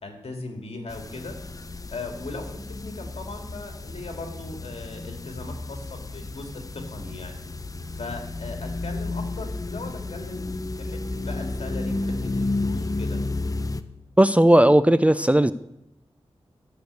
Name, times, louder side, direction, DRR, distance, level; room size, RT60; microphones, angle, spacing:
voice 1, 0.0-1.4 1.9-7.4 7.9-10.5 10.8-13.2, left 3 dB, 75° left, 3 dB, 2.3 m, -38 dB
sound 1, 0.9-13.8, left 2 dB, 35° left, 0.7 m, -32 dB
voice 2, 14.2-15.5, right 1 dB, 15° right, 14 dB, 0.4 m, -16 dB
13.0 x 6.5 x 8.1 m, 0.86 s
wide cardioid pair, 75°, 10 cm